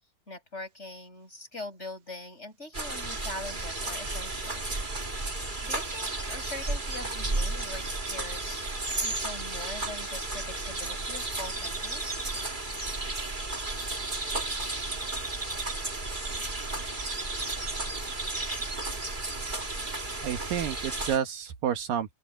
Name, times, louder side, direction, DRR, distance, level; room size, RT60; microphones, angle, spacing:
voice 1, 0.3-4.8 5.6-8.7 9.0-12.2, left 2 dB, 15° left, 7.4 m, -42 dB
sound 1, 2.7-21.2, right 2 dB, 15° right, 1.8 m, -33 dB
voice 2, 20.2-22.1, right 9 dB, 75° right, 3.1 m, -30 dB
open air
omnidirectional pair, 4.1 m